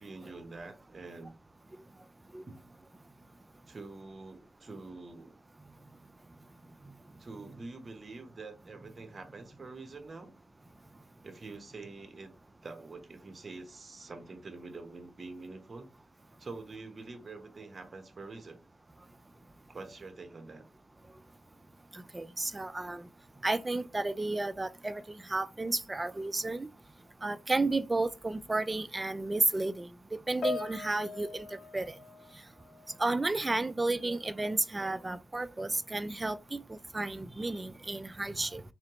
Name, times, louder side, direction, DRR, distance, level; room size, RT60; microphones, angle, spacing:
voice 1, 0.0-1.3 2.4-2.6 3.7-5.4 7.2-10.3 11.2-12.3 12.6-15.9 16.4-18.6 19.7-20.6, right 3 dB, 40° right, 1.0 m, -46 dB
voice 2, 21.9-23.1 23.4-26.7 27.2-29.9 30.3-31.9 33.0-38.6, right 2 dB, 20° right, 0.3 m, -32 dB
Piano, 30.4-33.1 33.3-33.7 34.4-34.6, left 3 dB, 60° left, 0.6 m, -40 dB
3.8 x 3.1 x 3.0 m
cardioid pair, 75°, 0 cm